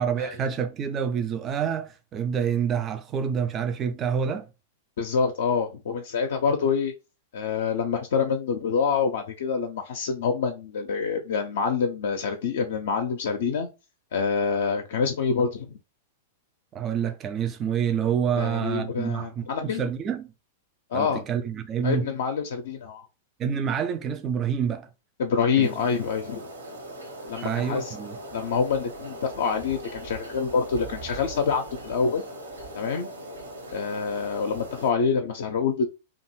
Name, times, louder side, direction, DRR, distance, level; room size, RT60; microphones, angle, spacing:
voice 1, 0.0-4.5 16.7-20.3 20.9-22.1 23.4-24.9 25.6-25.7 27.4-28.2, right 7 dB, 30° right, 0.3 m, -27 dB
voice 2, 5.0-6.9 7.3-13.7 14.1-15.8 18.4-19.8 20.9-21.2 21.8-23.1 25.2-26.5 27.3-28.0 28.3-32.2 32.8-33.1 33.7-35.9, left 5 dB, 65° left, 0.4 m, -26 dB
sound 1, 25.6-34.9, right 1 dB, 75° right, 0.8 m, -40 dB
2.6 x 2.3 x 3.0 m
figure-of-eight pair, 100°, 0 cm